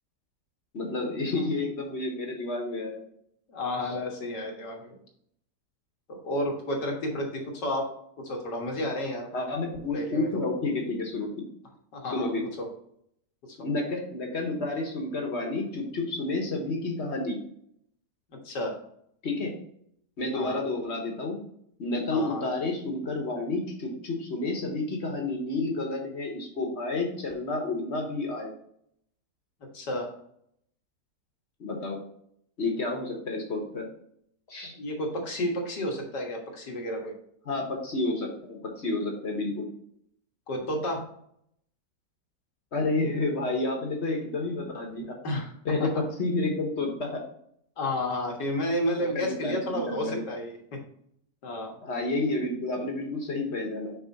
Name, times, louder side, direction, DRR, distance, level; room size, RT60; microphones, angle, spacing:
voice 1, 0.7-3.0 3.8-3.9 9.3-11.4 12.1-12.4 13.6-17.4 19.2-19.5 20.2-21.4 21.8-28.5 31.6-32.0 32.6-33.9 34.5-34.7 37.4-39.7 42.7-45.2 45.6-47.2 49.0-50.2 51.8-53.9, left 2 dB, 45° left, 2 dB, 1.4 m, -30 dB
voice 2, 3.5-5.0 6.1-7.9 8.2-9.3 9.9-10.3 11.9-12.3 12.6-12.7 13.5-13.6 18.4-18.7 20.3-20.6 22.1-22.4 29.7-30.1 34.7-37.1 40.5-41.0 45.2-45.5 45.8-45.9 47.8-50.8 51.4-51.7, left 1 dB, 85° left, 1 dB, 2.1 m, -31 dB
6.1 x 4.9 x 4.1 m, 0.70 s
omnidirectional pair, 1.8 m